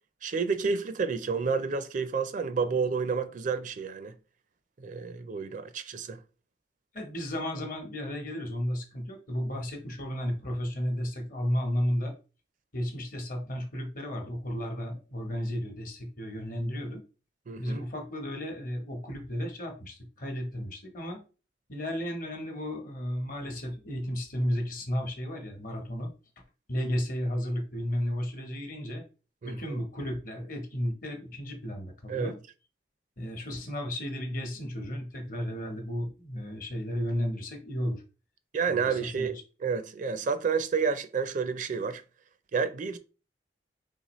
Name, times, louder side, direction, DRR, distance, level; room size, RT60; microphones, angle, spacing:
voice 1, 0.2-4.2 4.8-6.2 17.5-17.8 29.4-29.8 32.1-32.3 38.5-42.0 42.5-43.0, right 5 dB, 45° right, 0.4 m, -30 dB
voice 2, 6.9-12.1 12.7-17.0 17.6-21.2 21.7-26.1 26.7-29.0 29.4-32.4 33.2-38.0 38.7-39.3, equal, 50° left, 1.0 m, -33 dB
4.0 x 3.4 x 3.0 m
head